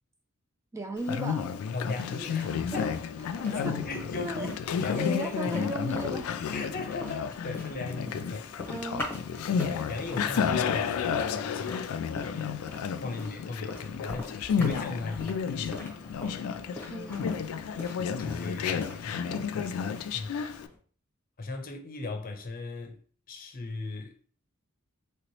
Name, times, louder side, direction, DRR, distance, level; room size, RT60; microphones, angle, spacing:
voice 1, 0.7-1.5 2.7-2.9 3.6-3.8 4.2-4.5 5.0-6.3 8.7-9.1 16.9-17.4, equal, 15° right, 0.3 m, -35 dB
Conversation, 1.0-20.7, left 6 dB, 80° left, 0.3 m, -32 dB
voice 2, 1.7-5.5 6.5-8.5 8.8-9.0 9.7-12.6 12.9-16.1 18.2-19.3 20.1-20.5 21.4-23.0 23.3-24.1, left 3 dB, 45° left, 0.7 m, -38 dB
sound 1, 2.2-20.8, left 2 dB, 10° left, 1.0 m, -44 dB
3.0 x 2.9 x 3.0 m
head